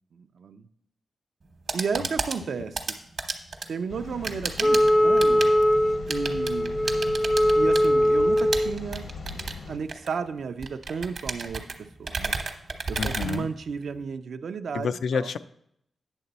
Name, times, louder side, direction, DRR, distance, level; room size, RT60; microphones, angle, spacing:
voice 1, 0.1-0.7 1.7-3.0 3.7-5.5 6.1-6.8 7.6-9.3 9.7-12.4 12.9-15.3, right 5 dB, 75° right, 10 dB, 0.4 m, -33 dB
sound 1, 1.4-14.0, right 4 dB, 55° right, 1.0 m, -34 dB
sound 2, 3.9-9.8, left 4 dB, 70° left, 0.9 m, -39 dB
Wind instrument woodwind instrument, 4.6-8.7, equal, 15° left, 0.4 m, -21 dB
voice 2, 13.0-13.5 14.7-15.4, left 6 dB, 85° left, 12 dB, 0.3 m, -29 dB
8.9 x 6.7 x 4.0 m, 0.74 s
wide cardioid pair, 105°, 0 cm